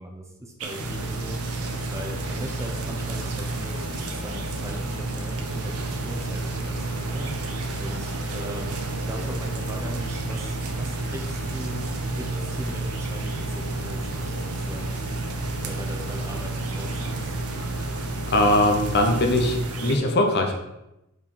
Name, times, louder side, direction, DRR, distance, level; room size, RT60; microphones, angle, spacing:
voice 1, 0.0-11.8 12.2-15.0 15.6-17.4, right 1 dB, 15° right, 2 dB, 0.8 m, -39 dB
sound 1, 0.6-20.0, right 3 dB, 80° right, 1.0 m, -35 dB
Engine, 0.8-19.7, right 2 dB, 85° left, 1.4 m, -31 dB
voice 2, 18.3-20.5, left 1 dB, 50° left, 3 dB, 1.1 m, -21 dB
5.1 x 4.8 x 5.5 m, 0.90 s
head